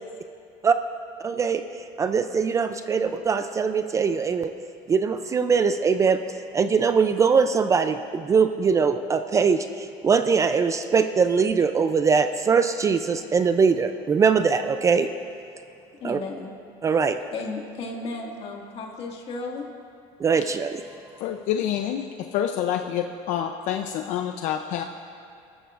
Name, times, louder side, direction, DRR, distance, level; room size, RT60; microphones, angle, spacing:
voice 1, 1.2-4.5 4.9-6.2 6.5-15.1 16.0-16.2 16.8-17.2 20.2-20.8, right 5 dB, 20° right, 9 dB, 0.4 m, -22 dB
voice 2, 16.0-16.5 17.3-19.7, left 3 dB, 45° left, 0 dB, 2.1 m, -34 dB
voice 3, 21.2-24.8, left 10 dB, 65° left, 5 dB, 0.6 m, -27 dB
26.5 x 13.5 x 2.5 m, 2.5 s
cardioid pair, 145°, 14 cm